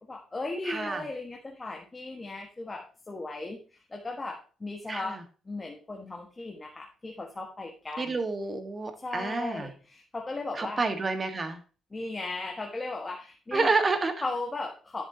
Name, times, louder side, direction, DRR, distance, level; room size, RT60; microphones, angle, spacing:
voice 1, 0.1-3.6 3.9-5.2 5.4-8.2 9.0-10.8 11.9-13.7 14.2-15.0, left 2 dB, 25° left, 1 dB, 1.6 m, -36 dB
voice 2, 0.6-1.0 4.9-5.2 8.0-9.7 10.5-11.6 13.5-14.1, right 3 dB, 30° right, 7 dB, 1.6 m, -29 dB
10.5 x 7.2 x 2.9 m, 0.37 s
cardioid pair, 90°, 0 cm